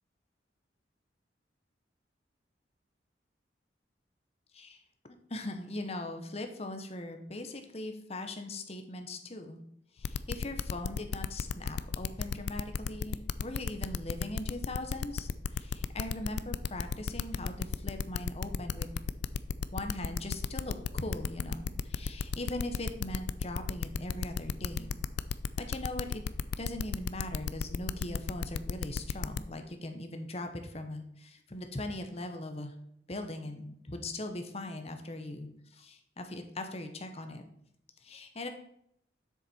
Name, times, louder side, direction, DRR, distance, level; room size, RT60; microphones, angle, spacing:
voice 1, 5.3-9.6 9.9-18.9 19.7-25.0 25.6-26.2 26.6-32.7 33.1-37.4 38.0-38.5, left 1 dB, 35° left, 6 dB, 1.0 m, -40 dB
sound 1, 10.0-29.4, left 6 dB, 65° left, 0.4 m, -33 dB
7.4 x 6.5 x 4.3 m, 0.73 s
head